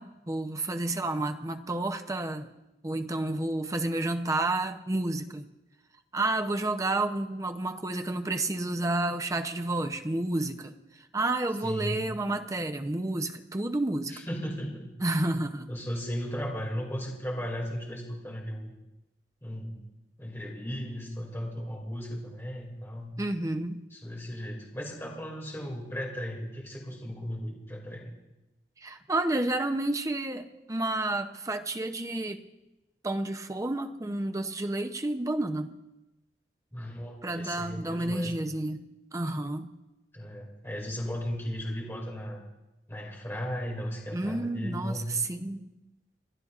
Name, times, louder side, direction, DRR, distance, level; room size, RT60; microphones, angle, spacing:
voice 1, 0.0-2.5 2.8-5.5 6.1-10.7 11.1-14.2 15.0-15.7 23.2-23.8 28.8-32.4 33.0-35.7 37.2-38.8 39.1-39.7 44.1-45.7, right 2 dB, 20° right, 6 dB, 0.7 m, -30 dB
voice 2, 11.6-12.0 14.1-14.9 15.7-18.7 19.4-19.8 20.2-23.1 23.9-28.1 36.7-38.4 40.1-42.4 42.9-45.1, equal, 15° left, -2 dB, 2.5 m, -36 dB
30.0 x 12.0 x 2.5 m, 0.99 s
head